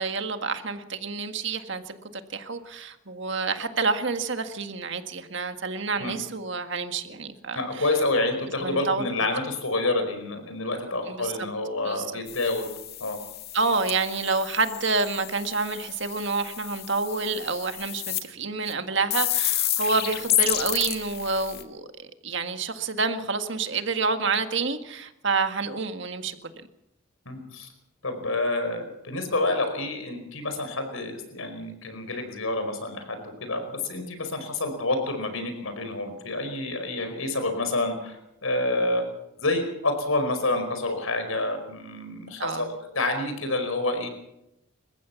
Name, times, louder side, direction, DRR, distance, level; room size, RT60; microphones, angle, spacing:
voice 1, 0.0-2.0 2.3-7.9 8.6-9.3 11.1-11.3 11.8-12.2 13.5-21.9 22.2-26.5 42.4-42.7, right 4 dB, 55° right, 1.8 m, -28 dB
voice 2, 7.5-12.7 13.0-13.2 27.2-27.7 28.0-38.2 38.4-39.1 39.4-44.1, left 2 dB, 75° left, 4.9 m, -28 dB
sound 1, 12.3-18.2 18.7-18.8 19.1-21.6, left 12 dB, 45° left, 2.0 m, -30 dB
28.5 x 15.0 x 7.2 m
head